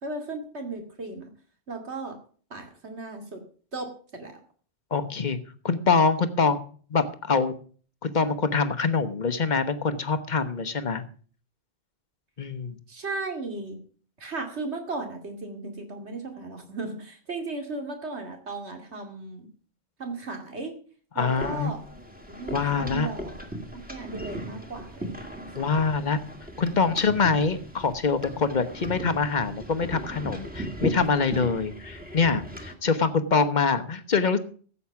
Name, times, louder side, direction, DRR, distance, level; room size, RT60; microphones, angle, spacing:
voice 1, 0.0-1.3 1.7-2.2 2.5-3.4 3.7-4.4 12.9-13.8 14.2-19.5 20.0-20.7 21.1-21.8 22.3-23.3 23.7-25.5, right 3 dB, 80° right, 4 dB, 2.7 m, -36 dB
voice 2, 4.9-5.4 5.6-6.6 6.9-7.5 8.0-11.0 12.4-12.8 21.2-21.7 22.5-23.1 25.5-26.2 26.6-34.4, left 4 dB, 45° left, 10 dB, 1.2 m, -24 dB
sound 1, 21.3-32.7, right 1 dB, 10° right, 1.9 m, -37 dB
14.5 x 8.1 x 5.9 m, 0.43 s
omnidirectional pair, 1.1 m